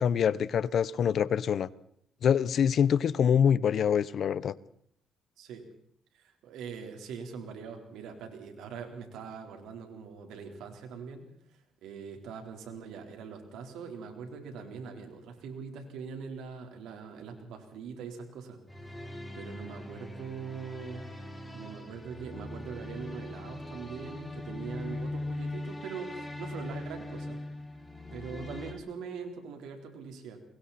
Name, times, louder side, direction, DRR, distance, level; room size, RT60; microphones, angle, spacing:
voice 1, 0.0-1.7 2.2-4.5, left 8 dB, 60° left, 18 dB, 0.9 m, -25 dB
voice 2, 6.1-18.6 19.3-21.1 21.5-27.4 28.1-30.4, right 6 dB, 85° right, 4 dB, 4.2 m, -42 dB
sound 1, 18.7-28.7, left 2 dB, 5° left, 6.4 m, -40 dB
30.0 x 22.5 x 4.4 m, 0.66 s
cardioid pair, 90°, 0 cm